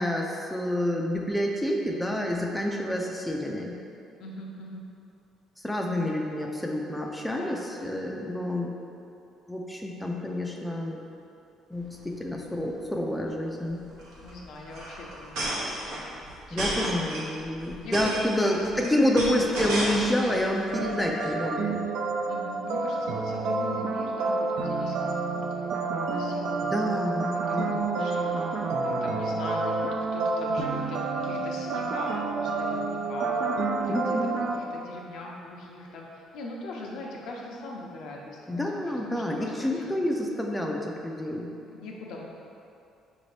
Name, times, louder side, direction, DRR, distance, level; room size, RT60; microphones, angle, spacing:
voice 1, 0.0-3.7 5.6-8.8 9.5-11.1 11.7-13.8 16.5-21.8 26.6-27.8 33.9-34.4 38.5-41.5, left 1 dB, 5° left, -1 dB, 0.4 m, -28 dB
voice 2, 4.2-4.8 7.4-7.7 14.2-16.2 16.5-17.0 17.6-19.6 22.3-33.4 33.8-34.2 34.5-40.0 41.8-42.3, left 2 dB, 75° left, -2 dB, 0.6 m, -41 dB
sound 1, 11.8-12.0 12.2-12.3 12.5-12.8 13.8-20.4 20.8-21.2, right 1 dB, 90° right, 0.8 m, -32 dB
sound 2, 20.7-34.6, right 3 dB, 70° right, 0.3 m, -29 dB
5.0 x 2.7 x 3.2 m, 2.6 s
cardioid pair, 115°, 0 cm